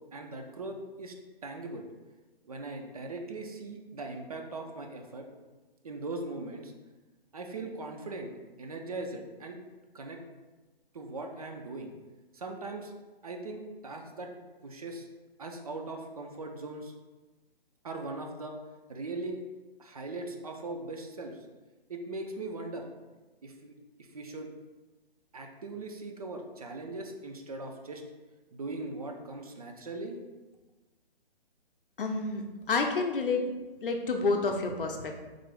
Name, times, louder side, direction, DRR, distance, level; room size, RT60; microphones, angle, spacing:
voice 1, 0.1-1.2 1.4-1.9 2.4-5.3 5.8-6.7 7.3-8.3 8.6-9.6 9.9-10.2 10.9-11.9 12.3-12.9 13.2-14.3 14.6-15.1 15.4-16.9 17.8-18.6 18.9-19.4 19.8-21.4 21.9-22.8 23.4-23.7 24.0-24.5 25.3-28.0 28.5-30.2, right 2 dB, 40° right, 3 dB, 0.4 m, -39 dB
voice 2, 32.0-33.4 33.8-35.2, left 4 dB, 60° left, 4 dB, 0.6 m, -29 dB
3.9 x 2.9 x 3.2 m, 1.2 s
figure-of-eight pair, 135°, 30 cm